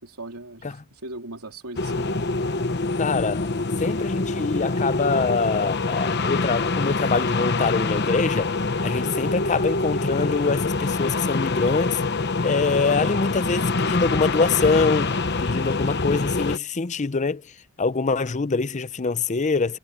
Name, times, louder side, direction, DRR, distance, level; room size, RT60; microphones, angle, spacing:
voice 1, 0.0-2.1, right 2 dB, 85° right, 3.6 m, -39 dB
sound 1, 1.8-16.6, left 3 dB, 50° left, 1.1 m, -25 dB
voice 2, 3.0-3.5 3.8-8.5 8.8-12.0 12.4-19.8, left 4 dB, 35° left, 0.6 m, -24 dB
head